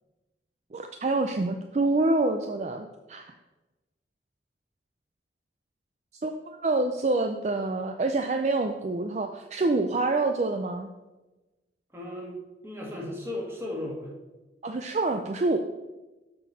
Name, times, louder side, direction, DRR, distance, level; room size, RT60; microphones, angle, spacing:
voice 1, 0.7-3.3 6.2-10.9 14.6-15.6, right 2 dB, 40° right, 5 dB, 0.4 m, -27 dB
voice 2, 11.9-12.4 12.6-14.1, left 1 dB, 15° right, -2 dB, 1.7 m, -35 dB
7.6 x 5.9 x 5.1 m, 1.1 s
head